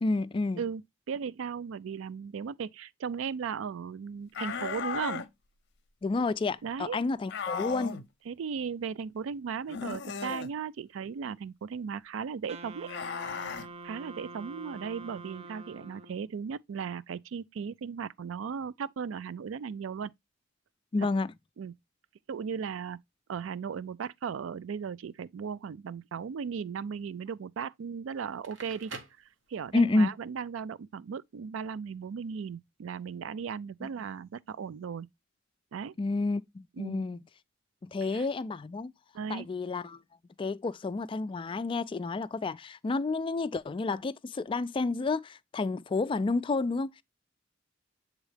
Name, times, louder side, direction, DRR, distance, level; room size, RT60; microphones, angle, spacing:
voice 1, 0.0-0.6 6.0-8.0 20.9-21.3 29.7-30.1 36.0-37.2 37.8-38.9 39.3-40.0 40.4-47.0, left 3 dB, 25° left, 0.3 m, -30 dB
voice 2, 1.1-5.2 6.6-7.0 8.3-12.9 13.8-20.1 21.6-21.7 22.3-23.0 23.3-28.9 29.5-35.1 35.7-35.9 36.8-37.0 38.1-38.2 39.1-39.5, right 6 dB, 85° right, 0.4 m, -36 dB
sound 1, 4.3-5.3 7.3-8.0 9.7-10.5 12.9-13.7, left 6 dB, 60° left, 0.6 m, -36 dB
Wind instrument woodwind instrument, 12.5-16.3, right 3 dB, 35° right, 0.5 m, -46 dB
Crackle, 28.2-30.0, right 4 dB, 70° right, 1.0 m, -46 dB
8.1 x 3.6 x 3.3 m
head